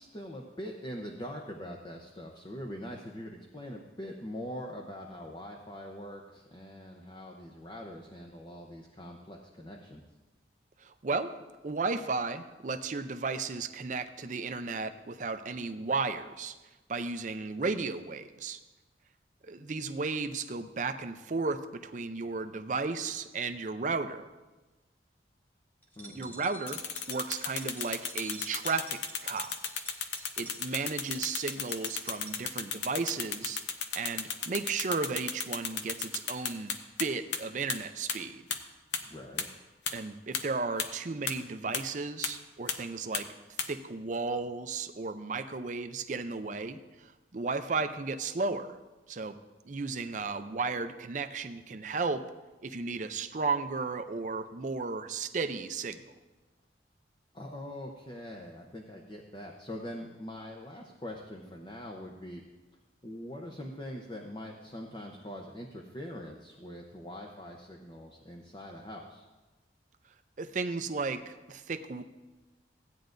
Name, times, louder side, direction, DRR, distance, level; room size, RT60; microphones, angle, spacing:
voice 1, 0.0-10.0 26.0-26.4 39.0-39.5 57.3-62.4 63.0-69.2, equal, 25° left, -1 dB, 0.7 m, -43 dB
voice 2, 10.8-11.3 11.6-16.6 16.9-18.6 19.4-24.3 26.1-26.8 27.1-29.5 30.4-33.6 33.9-36.7 37.0-38.4 39.9-43.3 43.7-48.8 49.1-49.4 49.6-52.2 52.6-56.0 70.4-72.0, right 4 dB, 40° right, 9 dB, 0.5 m, -34 dB
sound 1, 25.8-32.4, right 2 dB, 10° left, 1.5 m, -49 dB
sound 2, 26.7-37.0 37.3-37.4 37.7-37.8 38.1-38.2 38.5-38.6 38.9-39.0 39.4-39.5 39.9-40.0 40.3-40.4 40.8-40.9 41.3-41.4 41.7-41.8 42.2-42.3 42.7-42.8 43.1-43.2 43.6-43.7, left 7 dB, 70° left, 0.7 m, -33 dB
15.5 x 9.3 x 2.6 m, 1.2 s
head